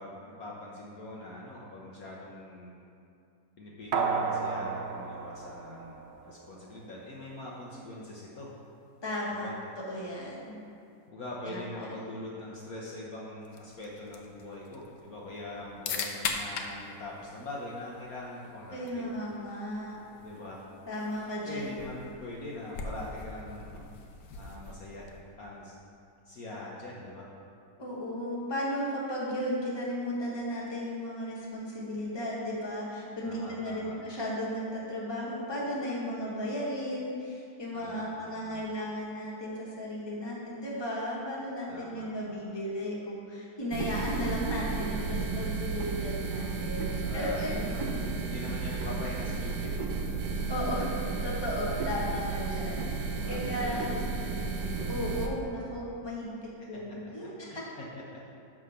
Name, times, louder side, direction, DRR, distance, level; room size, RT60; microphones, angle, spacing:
voice 1, 0.0-2.8 3.6-8.5 9.3-9.5 11.1-19.1 20.2-20.6 21.4-23.9 24.3-25.1 25.4-25.7 26.2-27.3 33.2-33.9 37.7-38.6 41.7-42.4 47.0-47.8 48.3-49.7 53.1-54.5 57.5-58.2, left 2 dB, 60° left, -4 dB, 1.3 m, -42 dB
sound 1, 3.9-6.5 6.8-6.9, right 5 dB, 90° right, 0.5 m, -32 dB
voice 2, 9.0-9.5 9.8-10.6 11.4-11.9 18.7-20.0 20.9-21.7 27.8-47.5 50.5-53.9 54.9-57.5, equal, 15° left, -5 dB, 1.4 m, -35 dB
sound 2, 13.4-25.4, left 4 dB, 75° left, 1.3 m, -42 dB
sound 3, 43.7-55.3, right 4 dB, 65° right, 1.3 m, -33 dB
10.5 x 3.7 x 6.5 m, 2.6 s
omnidirectional pair, 1.9 m